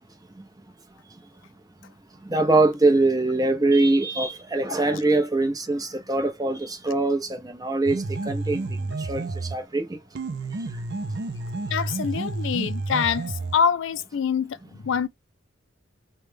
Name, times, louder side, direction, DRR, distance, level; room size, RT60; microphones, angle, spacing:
voice 1, 2.3-8.7 9.1-9.3 9.5-9.9, right 2 dB, 20° right, 0.7 m, -22 dB
voice 2, 4.7-5.0 11.7-15.1, left 7 dB, 65° left, 0.4 m, -25 dB
sound 1, 7.9-9.7 10.2-13.7, right 3 dB, 55° right, 0.5 m, -30 dB
3.2 x 2.2 x 3.3 m
head